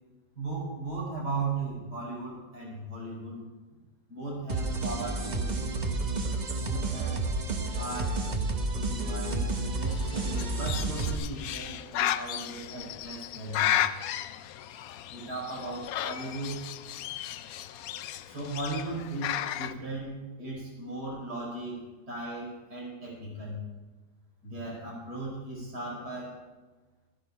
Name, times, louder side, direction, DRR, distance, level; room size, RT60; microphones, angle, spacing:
voice 1, 0.4-3.4 4.1-5.6 6.6-7.2 7.7-8.3 8.7-13.9 15.1-16.6 18.3-23.6 24.4-26.4, right 2 dB, 70° right, -4 dB, 5.5 m, -37 dB
sound 1, 4.5-11.2, right 2 dB, 35° right, 0.8 m, -30 dB
Bird, 9.8-19.7, left 11 dB, 70° left, 0.9 m, -34 dB
13.5 x 11.0 x 4.7 m, 1.2 s
omnidirectional pair, 1.8 m